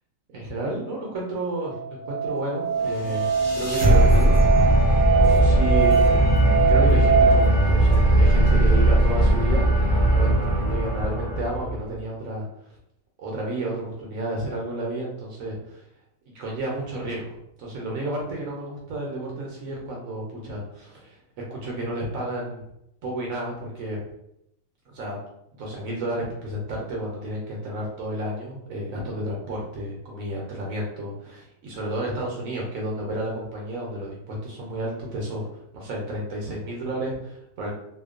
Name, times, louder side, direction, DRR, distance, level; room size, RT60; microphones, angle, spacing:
voice 1, 0.3-3.3 3.5-4.6 5.2-9.7 10.1-12.7 13.2-15.8 16.3-21.2 21.5-22.6 23.0-24.0 24.9-25.2 25.5-37.7, right 1 dB, 70° right, -2 dB, 0.9 m, -31 dB
Musical instrument, 1.6-7.3, right 5 dB, 65° left, 1.0 m, -22 dB
sound 1, 2.8-11.9, right 1 dB, 30° right, 0.6 m, -19 dB
2.8 x 2.2 x 2.3 m, 0.80 s
omnidirectional pair, 1.6 m